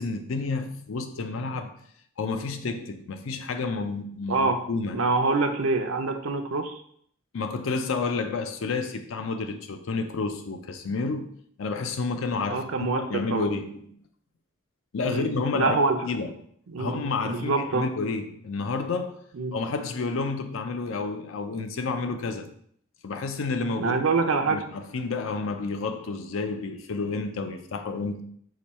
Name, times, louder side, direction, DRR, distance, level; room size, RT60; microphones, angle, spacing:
voice 1, 0.0-1.7 2.2-5.1 7.3-11.3 11.6-13.9 14.9-15.8 16.0-16.3 16.8-19.3 19.5-22.5 23.0-23.9 24.3-28.2, left 4 dB, 80° left, 0.5 m, -30 dB
voice 2, 4.9-6.8 12.5-13.4 15.0-15.3 15.5-16.0 16.7-17.9 19.3-19.5 23.8-24.6, right 3 dB, 85° right, 0.5 m, -25 dB
4.8 x 2.2 x 4.1 m
head